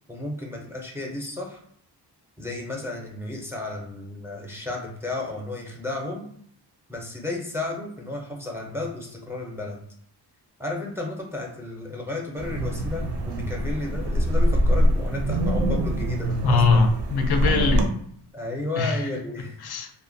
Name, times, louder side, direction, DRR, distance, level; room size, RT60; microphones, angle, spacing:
voice 1, 0.1-1.6 2.4-6.2 6.9-9.8 10.6-16.9 18.3-19.6, left 2 dB, 5° right, -1 dB, 0.5 m, -33 dB
Wind, 12.4-17.9, right 1 dB, 90° right, 0.6 m, -24 dB
voice 2, 16.4-17.9 18.8-19.1 19.6-19.9, left 4 dB, 70° left, 5 dB, 0.5 m, -22 dB
2.7 x 2.1 x 2.6 m, 0.64 s
wide cardioid pair, 130°, 40 cm